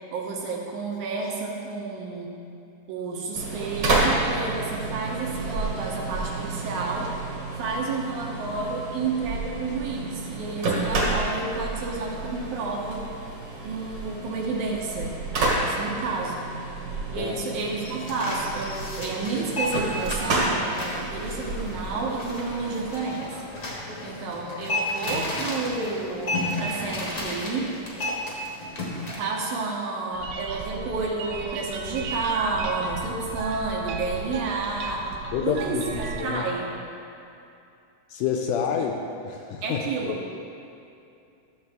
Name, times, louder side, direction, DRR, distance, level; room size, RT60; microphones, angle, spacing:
voice 1, 0.1-2.4 2.9-7.1 7.6-13.1 13.6-16.5 17.1-23.4 24.0-27.8 29.2-35.1 35.4-36.8 38.7-38.8 39.6-40.3, right 3 dB, 70° right, -1 dB, 2.1 m, -30 dB
sound 1, 3.4-22.9, right 2 dB, 50° right, 2.5 m, -30 dB
sound 2, 17.8-29.1, left 1 dB, 60° left, 0.9 m, -33 dB
sound 3, 30.1-36.2, right 5 dB, 90° right, 2.3 m, -35 dB
voice 2, 35.3-36.5 38.1-38.9 39.2-40.2, left 7 dB, 80° left, 2 dB, 1.9 m, -28 dB
12.5 x 7.1 x 3.5 m, 2.6 s
omnidirectional pair, 4.0 m